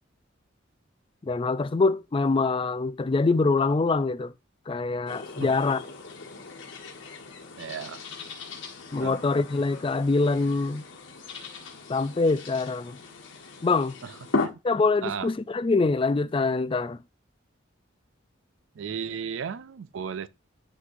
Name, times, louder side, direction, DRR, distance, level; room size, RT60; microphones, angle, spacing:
voice 1, 1.2-4.3 4.7-5.8 8.9-10.8 11.9-13.0 13.6-13.9 14.6-17.0, left 3 dB, 25° left, 0.4 m, -24 dB
sound 1, 5.1-14.5, left 3 dB, 75° left, 1.6 m, -37 dB
voice 2, 7.6-8.0 9.0-9.2 14.0-14.6 15.0-15.3 18.7-20.3, right 7 dB, 70° right, 0.4 m, -35 dB
9.8 x 5.8 x 2.6 m
head